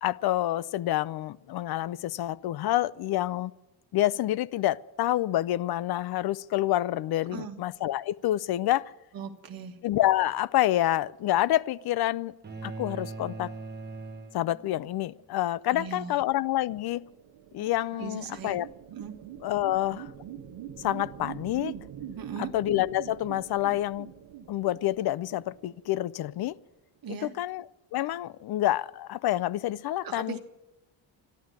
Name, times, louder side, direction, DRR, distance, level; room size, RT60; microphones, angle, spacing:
voice 1, 0.0-3.5 3.9-8.9 9.8-12.3 12.6-13.5 14.3-17.0 17.5-18.7 19.4-20.1 20.8-21.7 22.4-24.1 24.5-26.6 27.2-27.6 27.9-30.4, left 14 dB, 55° left, 0.5 m, -28 dB
voice 2, 9.1-9.8 15.7-16.2 17.9-18.6 18.9-19.2 22.2-22.5 27.0-27.3 30.0-30.4, right 6 dB, 50° right, 1.7 m, -38 dB
sound 1, 12.4-15.0, right 3 dB, 20° right, 1.1 m, -40 dB
sound 2, 16.5-26.2, right 10 dB, 85° right, 1.3 m, -44 dB
13.0 x 11.5 x 9.5 m
cardioid pair, 155°, 45 cm